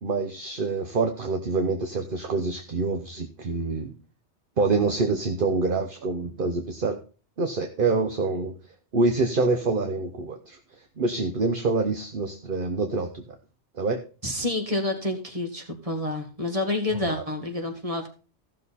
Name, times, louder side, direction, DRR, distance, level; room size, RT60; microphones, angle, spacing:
voice 1, 0.0-3.9 4.6-7.0 7.4-8.5 8.9-10.6 11.0-13.2 13.8-14.0 17.1-17.2, right 3 dB, 50° right, 6 dB, 1.1 m, -26 dB
voice 2, 14.2-18.1, left 2 dB, 30° right, 4 dB, 2.1 m, -28 dB
15.0 x 6.6 x 4.2 m, 0.36 s
omnidirectional pair, 1.2 m